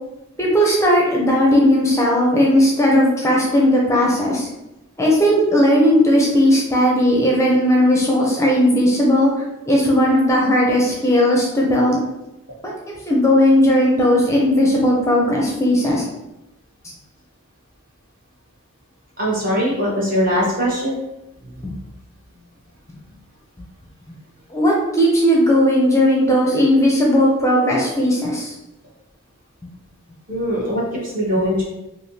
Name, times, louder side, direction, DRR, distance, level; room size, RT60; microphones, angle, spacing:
voice 1, 0.4-4.5 5.0-9.3 9.7-12.0 12.6-12.7 13.1-16.0 21.6-21.7 24.5-28.5, equal, 15° left, -2 dB, 0.5 m, -16 dB
voice 2, 19.2-20.9 21.4-21.5 30.3-31.6, equal, 40° right, -6 dB, 1.1 m, -21 dB
3.5 x 2.6 x 2.7 m, 0.95 s
head